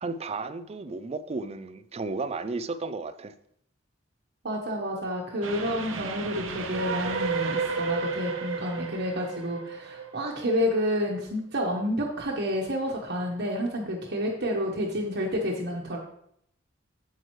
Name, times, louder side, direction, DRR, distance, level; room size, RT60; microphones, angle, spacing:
voice 1, 0.0-3.3, right 3 dB, 30° right, 0.4 m, -33 dB
voice 2, 4.4-16.0, equal, 55° right, 1.2 m, -29 dB
Train, 5.4-10.7, right 4 dB, 85° right, 1.0 m, -32 dB
8.8 x 7.9 x 3.2 m
head